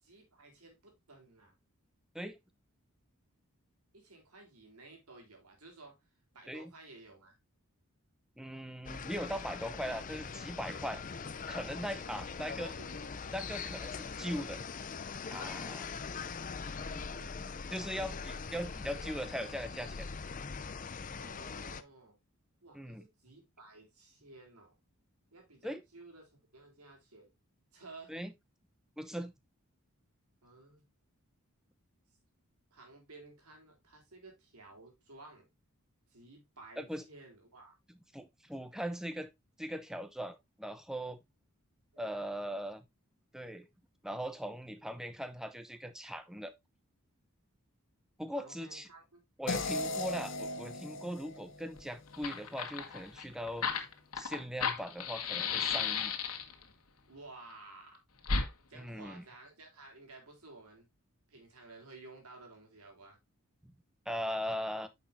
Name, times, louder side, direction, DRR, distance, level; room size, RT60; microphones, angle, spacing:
voice 1, 0.0-1.5 3.9-6.0 6.3-7.3 12.0-13.1 15.9-16.4 16.6-17.4 18.3-18.7 21.1-22.2 22.6-24.7 25.3-27.3 27.7-28.1 30.4-30.9 32.7-35.5 36.1-37.8 41.9-42.6 48.3-49.2 49.5-50.1 57.1-58.0 58.7-60.9 61.3-63.2, right 3 dB, 85° right, 3.8 m, -54 dB
voice 2, 8.4-11.0 11.5-12.7 13.3-14.6 15.3-15.9 17.7-20.1 22.7-23.0 25.6-25.8 28.1-28.3 29.0-29.3 36.8-37.0 38.1-39.3 39.6-41.2 42.0-42.8 43.3-43.7 44.0-46.5 48.2-48.9 49.4-53.7 54.2-56.2 58.7-59.2 63.6-63.7 64.1-64.9, equal, ahead, 0.8 m, -40 dB
sound 1, 8.9-21.8, left 5 dB, 35° left, 0.5 m, -42 dB
sound 2, 49.5-52.6, left 2 dB, 60° left, 1.0 m, -38 dB
Fire, 51.8-51.9 52.1-56.6 58.2-58.5, left 5 dB, 80° left, 1.6 m, -34 dB
9.3 x 6.5 x 2.6 m
head